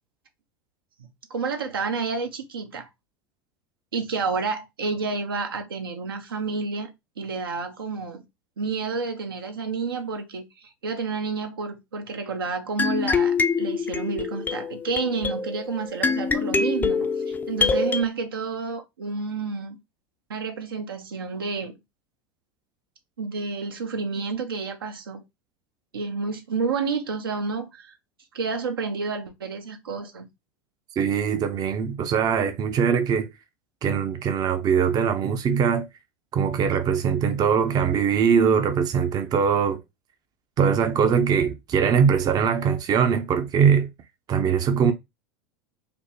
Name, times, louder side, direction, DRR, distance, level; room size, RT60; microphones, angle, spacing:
voice 1, 1.0-2.9 3.9-8.2 8.6-17.1 17.5-19.8 20.3-21.7 23.2-25.2 25.9-27.9 28.3-30.3 36.7-36.8, right 4 dB, 80° right, 0.8 m, -30 dB
sound 1, 12.8-18.0, left 4 dB, 15° left, 0.4 m, -25 dB
voice 2, 31.0-33.3 33.8-35.8 36.3-39.8 40.6-43.9 44.3-44.9, right 7 dB, 35° right, 0.6 m, -21 dB
5.1 x 2.0 x 2.9 m
hypercardioid pair, 85°, 12 cm